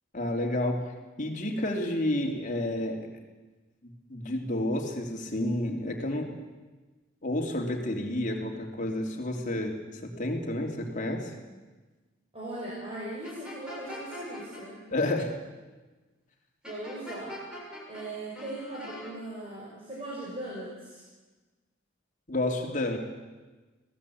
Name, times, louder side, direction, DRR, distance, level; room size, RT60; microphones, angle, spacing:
voice 1, 0.1-0.8 1.2-3.1 3.8-6.3 7.2-11.3 14.9-15.3 22.3-23.0, left 1 dB, 40° left, 2 dB, 3.3 m, -30 dB
voice 2, 12.3-14.9 16.6-17.4 17.9-21.0, right 1 dB, 30° right, -6 dB, 6.0 m, -39 dB
sound 1, 13.2-14.6 16.6-18.1 18.3-19.1, equal, 5° right, 6.8 m, -42 dB
24.5 x 18.0 x 8.7 m, 1.2 s
head